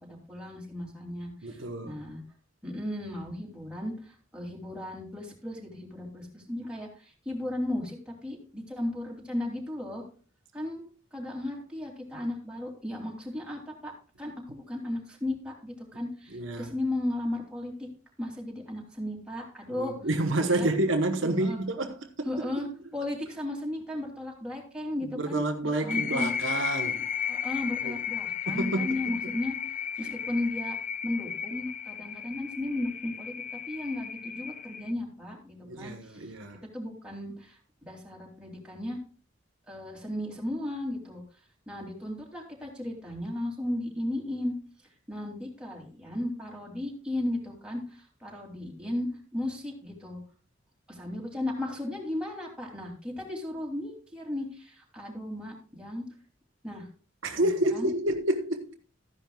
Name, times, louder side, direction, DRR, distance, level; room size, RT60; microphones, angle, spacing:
voice 1, 0.0-2.2 2.6-10.0 10.5-10.8 11.1-17.9 18.2-20.1 20.4-20.7 21.2-21.6 22.2-22.7 22.9-25.4 25.8-26.3 27.3-29.6 30.0-30.8 31.0-33.3 33.7-36.3 36.7-39.0 39.7-41.2 41.7-44.5 45.1-49.1 49.3-50.2 50.9-56.0 56.6-56.9 57.4-57.9, left 1 dB, 5° right, 2.9 m, -35 dB
voice 2, 1.4-2.0 16.3-16.7 19.7-22.6 25.1-27.0 27.8-28.0 28.5-29.1 30.0-30.1 35.6-36.6 57.2-58.7, right 1 dB, 70° right, 1.1 m, -29 dB
sound 1, 25.9-34.9, left 8 dB, 40° left, 0.5 m, -34 dB
13.5 x 10.5 x 2.4 m
head